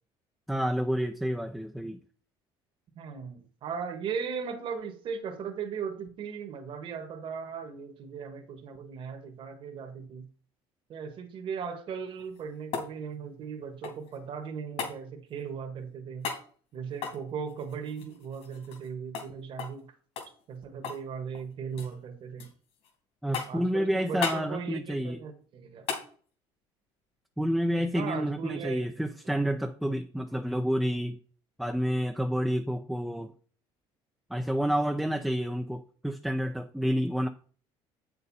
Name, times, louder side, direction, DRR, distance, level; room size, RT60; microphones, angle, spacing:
voice 1, 0.5-2.0 23.2-25.2 27.4-31.2 31.6-33.3 34.3-37.3, equal, ahead, 0.6 m, -29 dB
voice 2, 2.9-10.3 10.9-16.3 16.7-19.9 20.5-22.5 23.5-25.9 27.9-29.1, right 6 dB, 50° right, 1.7 m, -38 dB
sound 1, 12.1-14.2 14.8-15.0 16.2-16.5 16.9-18.9 19.1-19.3 19.6-19.8 20.2-21.1 21.3-21.9 22.4-22.9 23.3-23.7 24.2-24.5 25.9-26.1 28.4-28.5, left 6 dB, 70° left, 2.9 m, -36 dB
8.1 x 6.8 x 4.2 m
cardioid pair, 125°, 11 cm